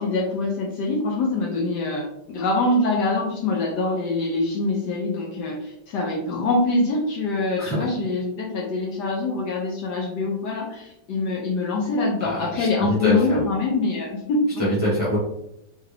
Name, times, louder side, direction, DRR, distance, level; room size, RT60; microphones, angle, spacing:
voice 1, 0.0-14.7, left 2 dB, 70° left, -2 dB, 1.1 m, -24 dB
voice 2, 7.6-7.9 12.2-13.4 14.6-15.2, equal, 5° right, -7 dB, 0.9 m, -24 dB
3.5 x 2.3 x 3.3 m, 0.83 s
omnidirectional pair, 2.1 m